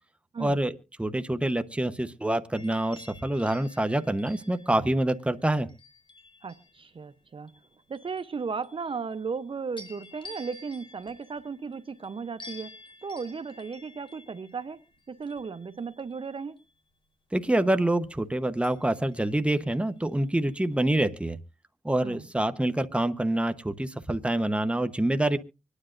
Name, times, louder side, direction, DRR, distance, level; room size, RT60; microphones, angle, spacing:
voice 1, 0.4-5.7 17.3-21.4 21.8-25.4, right 1 dB, 10° right, 0.9 m, -26 dB
sound 1, 2.6-6.9 7.5-9.4 9.8-16.7 18.6-20.0 20.5-20.7, left 2 dB, 45° left, 4.1 m, -51 dB
voice 2, 6.4-7.5 7.9-12.7 13.0-14.8 15.1-16.6 22.0-22.3, right 5 dB, 45° right, 0.7 m, -35 dB
25.0 x 9.9 x 2.5 m
cardioid pair, 65°, 12 cm